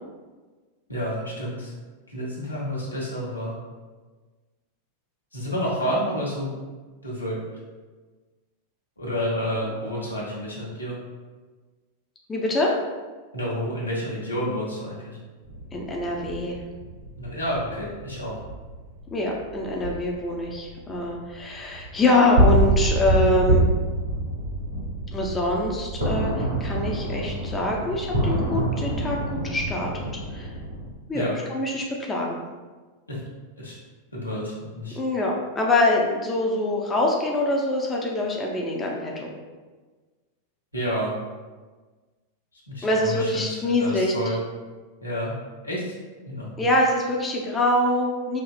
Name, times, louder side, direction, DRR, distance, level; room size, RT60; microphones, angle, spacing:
voice 1, 0.9-1.7 2.1-3.6 5.3-6.5 7.0-7.4 9.0-11.0 13.3-15.2 17.2-18.3 31.1-31.3 33.1-33.2 33.6-33.8 34.1-35.0 40.7-41.1 42.7-44.4 45.0-45.4 45.6-46.0 46.3-46.5, equal, 85° left, -6 dB, 1.0 m, -29 dB
voice 2, 12.3-12.7 15.7-16.6 19.1-23.7 25.1-30.5 31.1-32.4 35.0-39.3 42.8-44.1 46.6-48.4, left 1 dB, 15° left, -1 dB, 0.6 m, -24 dB
sound 1, 15.4-30.9, right 1 dB, 80° right, 1.4 m, -26 dB
4.9 x 2.7 x 2.4 m, 1.3 s
figure-of-eight pair, 90°, 0 cm